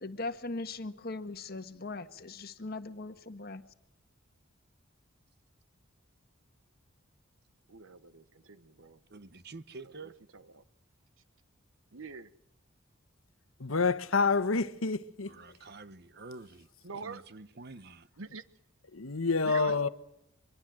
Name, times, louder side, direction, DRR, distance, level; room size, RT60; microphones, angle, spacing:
voice 1, 0.0-3.6, left 3 dB, 50° left, 1.5 m, -39 dB
voice 2, 7.7-9.0 9.8-10.6 11.9-12.3 16.8-17.2 18.2-18.4 19.4-19.9, right 5 dB, 80° right, 1.0 m, -45 dB
voice 3, 9.1-10.1 15.3-16.7 17.0-18.1, right 3 dB, 50° right, 1.0 m, -48 dB
voice 4, 13.6-15.3 18.9-19.9, left 4 dB, 85° left, 1.2 m, -28 dB
24.5 x 22.0 x 7.7 m
head